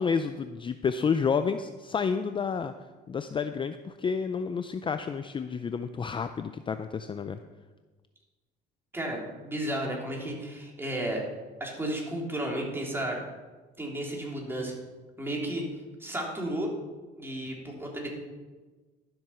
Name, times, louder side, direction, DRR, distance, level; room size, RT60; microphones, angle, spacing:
voice 1, 0.0-2.7 3.1-7.4, left 6 dB, 25° left, 10 dB, 0.5 m, -30 dB
voice 2, 8.9-11.2 11.6-13.2 13.8-14.7 15.2-15.6 16.0-16.7 17.2-18.1, right 1 dB, 10° right, -1 dB, 3.3 m, -33 dB
12.0 x 7.7 x 5.7 m, 1.3 s
supercardioid pair, 95°, 19 cm